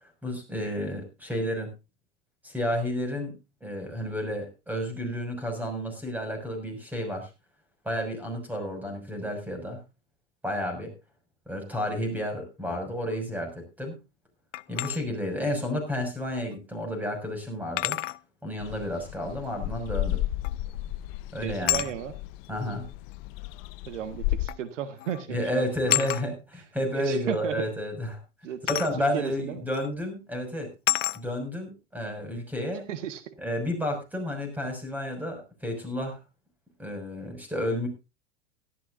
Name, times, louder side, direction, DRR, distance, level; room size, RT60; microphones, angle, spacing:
voice 1, 0.2-1.7 2.4-7.3 7.8-9.8 10.4-10.9 11.5-13.9 14.7-18.0 18.4-20.2 21.3-21.9 22.5-22.8 25.3-28.2 28.7-30.7 31.1-32.9 33.4-36.2 36.8-37.9, equal, 5° right, 5 dB, 6.1 m, -31 dB
sound 1, 14.5-15.0 16.5-16.6 17.8-18.2 20.4-20.8 21.7-21.9 23.1-23.2 24.5-24.7 25.0-25.2 25.9-26.2 28.7-28.9 29.7-29.9 30.9-31.2, left 15 dB, 85° left, 0.6 m, -28 dB
sound 2, 18.6-24.5, left 16 dB, 50° left, 0.8 m, -33 dB
voice 2, 21.4-22.1 23.8-26.3 26.9-27.7 28.4-29.7 32.7-33.3, right 10 dB, 80° right, 10 dB, 1.6 m, -35 dB
17.5 x 13.5 x 2.6 m, 0.27 s
hypercardioid pair, 115°, 37 cm